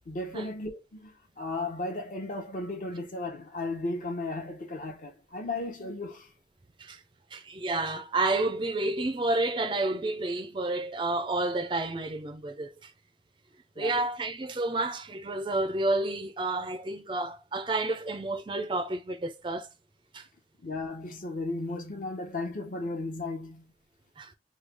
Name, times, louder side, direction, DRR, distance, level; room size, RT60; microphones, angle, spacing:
voice 1, 0.1-6.3 13.8-14.0 20.6-23.6, left 2 dB, 50° left, 0.9 m, -35 dB
voice 2, 7.3-12.9 13.8-19.7 20.1-20.2 24.2-24.3, right 2 dB, 25° right, 0.4 m, -30 dB
3.1 x 2.3 x 3.3 m
head